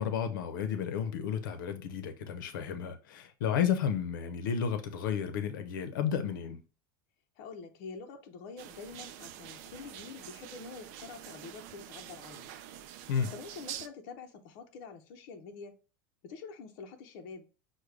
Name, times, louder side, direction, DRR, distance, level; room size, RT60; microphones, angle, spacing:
voice 1, 0.0-6.6 13.1-13.3, left 8 dB, 90° left, 0.6 m, -32 dB
voice 2, 7.4-12.5 13.3-15.8 16.2-17.4, left 5 dB, 50° left, 0.7 m, -46 dB
sound 1, 8.6-13.9, right 11 dB, 55° right, 0.4 m, -46 dB
6.3 x 2.2 x 3.3 m
supercardioid pair, 160°, 11 cm